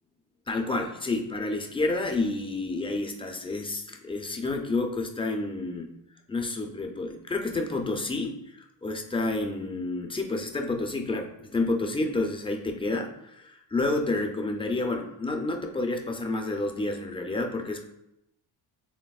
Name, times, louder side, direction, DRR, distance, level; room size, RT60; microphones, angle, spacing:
voice 1, 0.5-5.9 6.3-17.8, left 2 dB, 15° left, 3 dB, 0.4 m, -29 dB
6.5 x 3.4 x 2.3 m, 0.83 s
cardioid pair, 130°, 45 cm